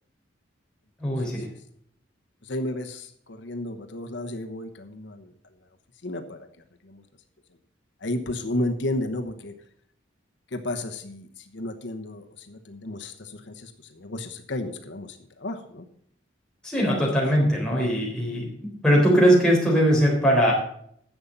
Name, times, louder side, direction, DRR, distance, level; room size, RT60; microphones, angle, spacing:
voice 1, 1.0-1.5 16.6-18.5 18.8-20.5, equal, 5° left, -4 dB, 3.7 m, -20 dB
voice 2, 2.4-5.3 6.0-6.5 6.8-7.0 8.0-9.5 10.5-15.8, left 1 dB, 75° left, 6 dB, 1.0 m, -33 dB
10.5 x 7.2 x 5.4 m, 0.66 s
head